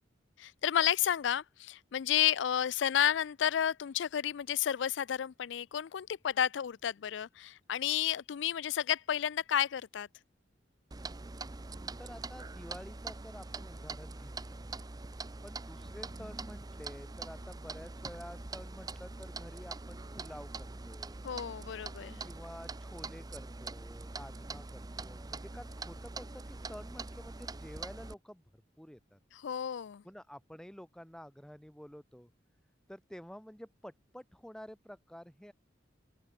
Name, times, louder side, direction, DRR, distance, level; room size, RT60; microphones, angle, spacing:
voice 1, 0.4-10.1 21.2-22.2 29.3-30.0, left 10 dB, 70° left, 0.4 m, -31 dB
Clock, 10.9-28.1, right 3 dB, 20° right, 0.6 m, -44 dB
voice 2, 12.0-14.7 15.4-21.2 22.2-28.4 28.8-29.2 30.0-32.3 32.9-35.5, equal, 5° left, 1.1 m, -50 dB
open air
head